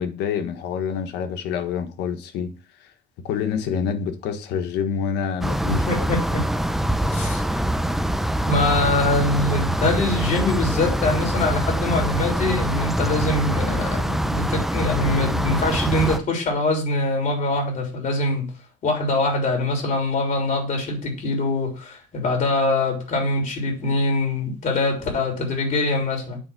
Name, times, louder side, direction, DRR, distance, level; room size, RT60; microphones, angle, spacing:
voice 1, 0.0-2.5 2.8-2.9 3.2-6.1, left 7 dB, 85° left, 1.4 m, -27 dB
sound 1, 5.4-16.2, right 1 dB, ahead, 0.6 m, -24 dB
voice 2, 5.7-6.4 7.1-7.4 8.5-18.5 18.8-26.4, left 2 dB, 50° left, 3.5 m, -23 dB
8.9 x 3.4 x 6.0 m
cardioid pair, 110°, 17 cm